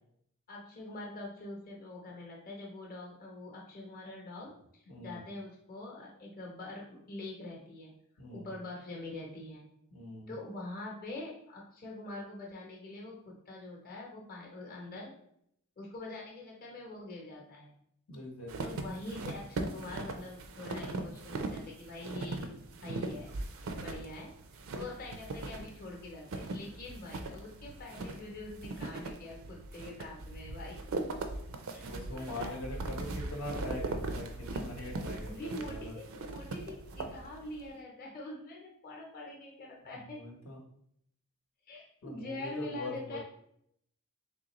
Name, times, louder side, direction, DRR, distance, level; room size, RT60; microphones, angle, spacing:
voice 1, 0.5-7.9 8.3-9.6 10.3-15.1 15.8-17.8 18.6-23.3 23.7-24.3 24.7-30.8 31.7-32.6 34.5-34.8 35.2-40.3 41.7-43.2, left 2 dB, 40° left, -2 dB, 0.8 m, -44 dB
voice 2, 4.9-5.2 8.2-8.5 9.9-10.3 18.1-18.8 31.5-31.6 31.8-36.0 39.9-40.6 42.0-43.2, left 1 dB, 70° left, 0 dB, 0.9 m, -42 dB
sound 1, 18.5-37.7, right 2 dB, 65° right, 0.4 m, -40 dB
3.7 x 3.2 x 2.9 m, 0.72 s
head